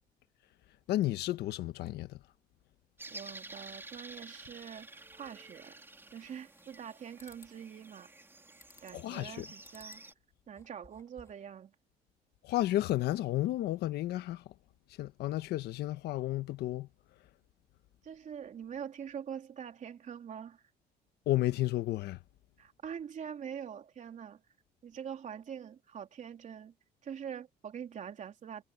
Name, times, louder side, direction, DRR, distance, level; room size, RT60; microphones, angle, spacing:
voice 1, 0.9-2.2 8.9-9.5 12.4-14.4 15.0-16.9 21.3-22.2, left 15 dB, 80° left, 1.3 m, -32 dB
sound 1, 3.0-10.1, right 2 dB, 15° right, 3.8 m, -51 dB
voice 2, 3.1-5.7 6.1-8.1 8.8-10.0 10.5-11.7 18.0-20.6 22.6-24.4 24.8-26.7 27.0-28.6, right 8 dB, 45° right, 3.3 m, -44 dB
sound 2, 6.2-6.9 7.2-7.5 8.6-9.1 9.6-10.1 10.4-11.5, left 3 dB, 15° left, 4.5 m, -59 dB
cardioid pair, 110°, 17 cm